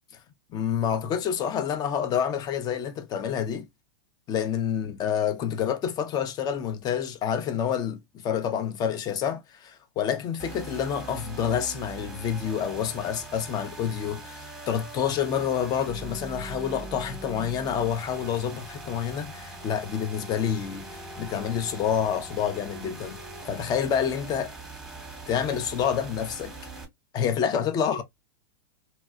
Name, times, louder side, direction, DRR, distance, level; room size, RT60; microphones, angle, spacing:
voice 1, 0.5-3.7 4.3-23.2 23.5-24.5 25.3-26.5 27.1-28.0, left 8 dB, 30° left, 0.7 m, -28 dB
sound 1, 10.4-26.8, right 2 dB, 5° right, 1.1 m, -41 dB
2.9 x 2.8 x 2.4 m
hypercardioid pair, 110°, 13 cm